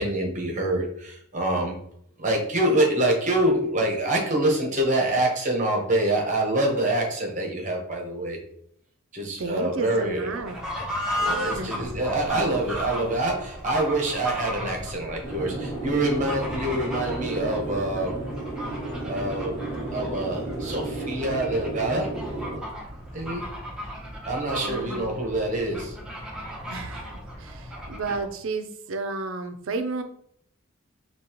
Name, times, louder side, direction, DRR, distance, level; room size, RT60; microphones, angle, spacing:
voice 1, 0.0-1.8 2.2-8.4 9.1-10.3 11.1-18.2 19.0-19.6 19.9-22.1 23.1-23.4 24.3-26.0, right 1 dB, 35° right, 0 dB, 1.0 m, -26 dB
voice 2, 9.4-10.6 11.2-11.8 24.5-25.1 26.7-27.1 27.4-30.0, right 3 dB, 65° right, 8 dB, 0.5 m, -32 dB
Fowl / Bird, 10.3-28.3, equal, 5° right, 0.8 m, -35 dB
sound 1, 15.2-22.6, right 2 dB, 35° left, 1.7 m, -33 dB
5.3 x 2.9 x 2.9 m, 0.67 s
head